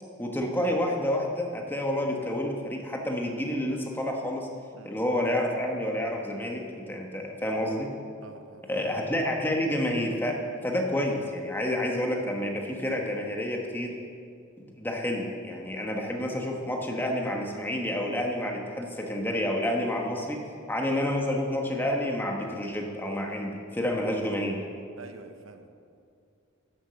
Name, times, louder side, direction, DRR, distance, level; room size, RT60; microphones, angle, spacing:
voice 1, 0.2-4.5 4.8-7.9 8.7-13.9 14.6-20.4 20.7-24.6, left 1 dB, 10° left, 1 dB, 1.2 m, -29 dB
voice 2, 8.2-8.7 20.5-20.7 25.0-25.7, right 3 dB, 80° right, 7 dB, 0.9 m, -47 dB
11.5 x 7.3 x 6.9 m, 2.4 s
head